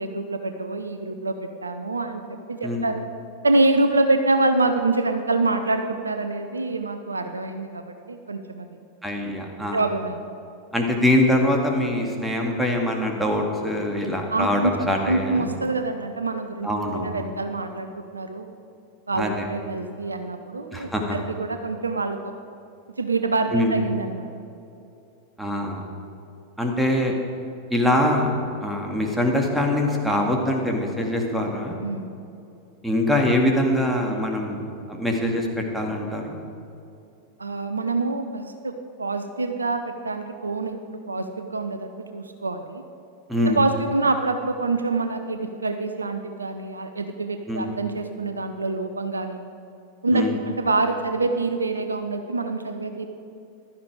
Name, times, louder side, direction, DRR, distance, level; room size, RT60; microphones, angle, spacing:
voice 1, 0.0-3.0 3.4-8.7 9.7-10.2 14.3-14.7 15.0-17.9 18.1-18.6 19.1-22.2 23.0-24.3 31.8-32.1 37.4-42.8 43.4-49.4 50.0-53.1, right 2 dB, 80° right, 7 dB, 0.8 m, -26 dB
voice 2, 9.0-9.8 10.7-15.5 16.6-17.2 19.2-19.5 20.7-21.2 23.5-23.8 25.4-25.8 26.6-27.2 27.7-28.3 28.6-31.8 32.8-35.5 35.7-36.4 43.3-43.6 47.5-47.7 50.1-50.4, left 1 dB, 5° right, 1 dB, 2.1 m, -23 dB
15.5 x 12.0 x 4.9 m, 2.7 s
figure-of-eight pair, 90°, 0 cm